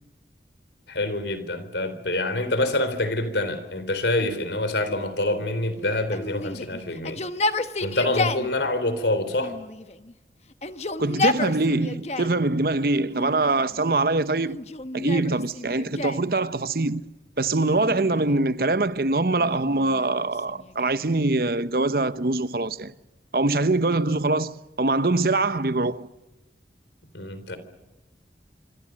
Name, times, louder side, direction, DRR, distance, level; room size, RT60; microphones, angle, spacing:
voice 1, 0.9-7.2 7.8-9.5 27.1-27.6, left 2 dB, 85° left, 3.9 m, -26 dB
Yell, 6.1-8.5 9.4-10.1 10.5-12.4 13.1-13.8 14.5-16.3 17.7-18.5 19.4-21.1, left 2 dB, 40° left, 1.1 m, -31 dB
voice 2, 11.0-14.6 14.9-17.0 17.4-22.9 23.3-26.1, right 2 dB, 55° right, 0.9 m, -23 dB
26.0 x 26.0 x 6.4 m
head